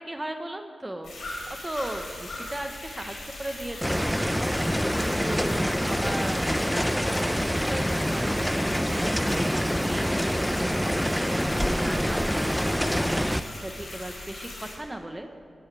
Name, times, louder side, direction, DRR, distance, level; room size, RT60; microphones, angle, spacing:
voice 1, 0.1-4.3 4.9-8.5 9.3-10.1 10.4-11.1 11.5-15.3, right 1 dB, 20° right, 5 dB, 1.2 m, -38 dB
sound 1, 1.0-14.7, left 2 dB, 85° left, 4.5 m, -40 dB
sound 2, 3.8-13.4, equal, ahead, 0.6 m, -26 dB
19.0 x 15.5 x 3.5 m, 2.2 s
cardioid pair, 50°, 0 cm